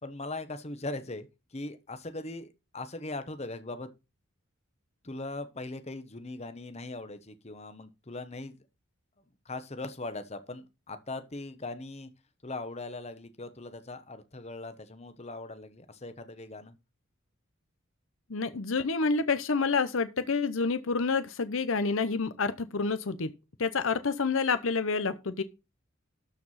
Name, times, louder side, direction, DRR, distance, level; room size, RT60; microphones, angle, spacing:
voice 1, 0.0-3.9 5.0-8.6 9.4-12.1 12.4-16.7, left 2 dB, 30° left, 1.1 m, -40 dB
voice 2, 18.3-23.3 23.6-25.4, left 4 dB, 65° left, 0.7 m, -28 dB
13.0 x 4.7 x 5.6 m
head